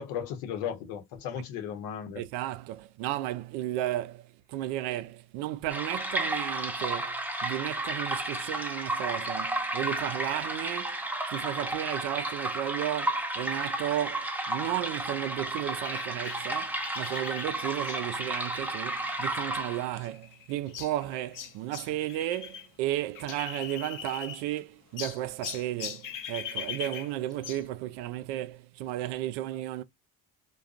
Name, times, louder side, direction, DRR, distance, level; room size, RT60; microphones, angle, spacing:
voice 1, 0.0-2.2, left 8 dB, 80° left, 0.9 m, -35 dB
voice 2, 2.2-11.0 11.3-29.8, right 14 dB, 75° right, 0.5 m, -34 dB
sound 1, 5.7-20.0, right 1 dB, 5° right, 0.5 m, -33 dB
sound 2, 15.8-22.7 22.9-24.6 25.0-27.7, left 8 dB, 45° left, 0.7 m, -41 dB
2.4 x 2.3 x 2.4 m
supercardioid pair, 70°, 43 cm